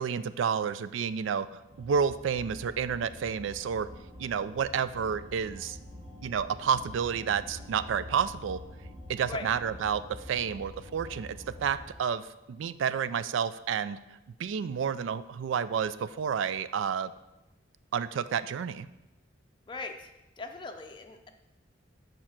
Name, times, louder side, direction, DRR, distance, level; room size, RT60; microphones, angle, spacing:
voice 1, 0.0-3.9 4.2-5.8 6.2-8.6 9.1-14.0 14.4-17.1 17.9-18.9, right 7 dB, 80° right, 15 dB, 0.3 m, -30 dB
sound 1, 1.7-11.9, left 1 dB, 55° right, 2.3 m, -46 dB
voice 2, 20.4-21.3, left 3 dB, 25° left, 4 dB, 0.5 m, -39 dB
6.5 x 5.1 x 5.8 m, 0.99 s
head